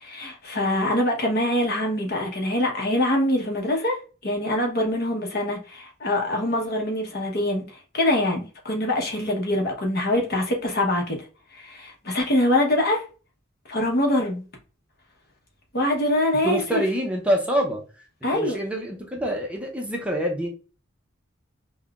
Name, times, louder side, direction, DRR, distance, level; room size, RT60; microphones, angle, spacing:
voice 1, 0.0-4.0 4.2-7.6 7.9-11.2 11.5-13.0 13.7-14.4 15.7-16.8 18.2-18.6, left 1 dB, 55° left, 1.0 m, -24 dB
voice 2, 16.4-17.8 18.3-20.5, equal, 5° right, 0.6 m, -26 dB
5.4 x 2.2 x 2.3 m
head